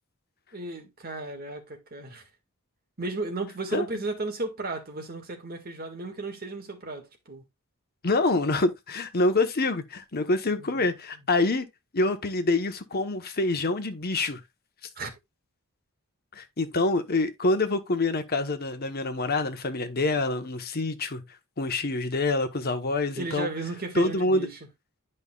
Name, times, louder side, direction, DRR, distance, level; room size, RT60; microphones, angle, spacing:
voice 1, 0.5-2.2 3.0-7.4 10.6-10.9 15.0-15.1 23.2-24.6, right 3 dB, 45° right, 1.8 m, -34 dB
voice 2, 8.0-11.7 11.9-14.4 16.3-21.2 21.6-23.5 23.9-24.5, left 2 dB, 45° left, 1.1 m, -26 dB
10.5 x 5.4 x 2.4 m
head